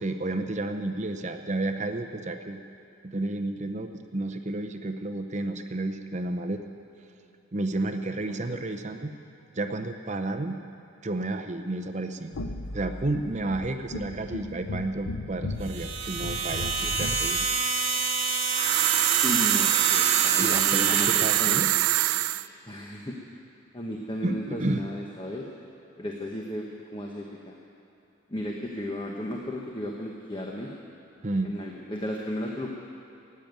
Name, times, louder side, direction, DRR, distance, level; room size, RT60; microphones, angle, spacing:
voice 1, 0.0-2.6 3.0-6.6 7.5-9.1 9.5-10.6 11.0-12.3 12.7-17.4 20.4-21.7 21.9-22.3 24.2-24.8 31.2-31.5, right 2 dB, 35° right, 6 dB, 0.7 m, -31 dB
voice 2, 8.2-8.6 16.8-16.9 19.2-21.6 22.7-23.2 23.7-25.5 26.0-26.7 26.9-27.5 28.3-30.7 31.4-32.7, left 1 dB, 20° left, -1 dB, 1.0 m, -34 dB
sound 1, 12.3-17.4, left 2 dB, 85° left, 0.7 m, -36 dB
sound 2, 15.6-21.8, right 4 dB, 70° right, 1.8 m, -28 dB
sound 3, 18.5-22.5, right 16 dB, 85° right, 0.3 m, -24 dB
15.5 x 8.7 x 9.3 m, 2.8 s
head